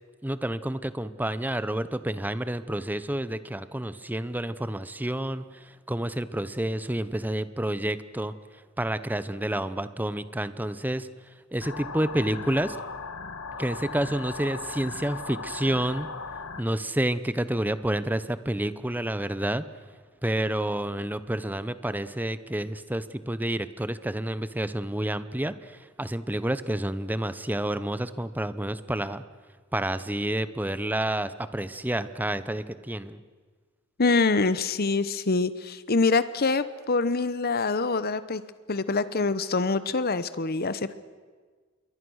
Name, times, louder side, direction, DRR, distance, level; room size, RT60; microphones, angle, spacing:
voice 1, 0.2-8.3 8.8-11.1 11.5-12.8 13.6-16.1 16.6-19.6 20.2-29.2 29.7-33.2, right 1 dB, 10° right, 14 dB, 0.7 m, -29 dB
sound 1, 11.6-16.6, left 4 dB, 70° left, 1.4 m, -38 dB
voice 2, 34.0-38.4 38.7-40.9, left 3 dB, 45° left, 15 dB, 0.9 m, -25 dB
28.0 x 22.5 x 6.4 m, 1.5 s
head